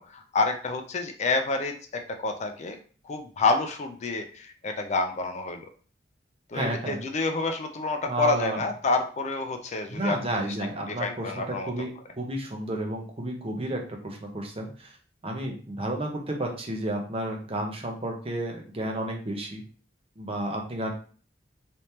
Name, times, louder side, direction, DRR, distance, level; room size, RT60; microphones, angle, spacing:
voice 1, 0.0-2.8 3.0-5.6 6.5-10.2 11.0-11.7, left 3 dB, 40° left, 5 dB, 0.4 m, -28 dB
voice 2, 6.5-7.0 8.1-8.6 9.9-15.0 15.2-19.6 20.2-20.9, right 1 dB, 35° right, 2 dB, 0.8 m, -31 dB
3.3 x 3.1 x 2.8 m, 0.40 s
head